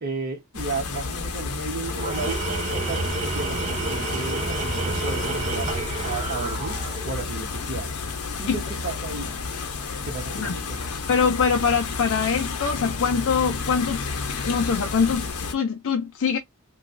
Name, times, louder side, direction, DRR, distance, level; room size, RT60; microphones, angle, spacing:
voice 1, 0.0-6.8 7.0-7.9 8.4-9.3 10.0-10.9, right 3 dB, 50° right, 1.0 m, -33 dB
sound 1, 0.5-15.5, left 4 dB, 90° left, 0.7 m, -31 dB
Tools, 1.9-7.2, right 3 dB, 30° right, 0.5 m, -29 dB
voice 2, 10.9-14.0 14.4-16.4, left 6 dB, 60° left, 0.4 m, -23 dB
2.9 x 2.3 x 2.4 m
head